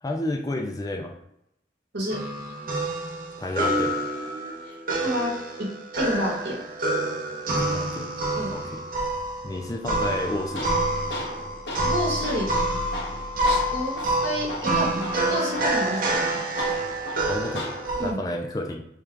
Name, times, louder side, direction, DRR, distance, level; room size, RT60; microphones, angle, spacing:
voice 1, 0.0-1.1 3.4-4.0 7.5-8.2 8.5-8.8 9.4-10.7 17.3-18.9, left 1 dB, 20° left, 2 dB, 0.3 m, -31 dB
sound 1, 2.1-18.1, right 1 dB, 45° right, 0.6 m, -27 dB
voice 2, 6.0-6.5 8.3-8.5 11.8-12.7 13.4-16.4 18.0-18.2, equal, 75° right, -2 dB, 1.4 m, -29 dB
Tools, 10.0-18.0, left 1 dB, 75° left, 0.8 m, -37 dB
4.5 x 2.4 x 3.4 m, 0.80 s
head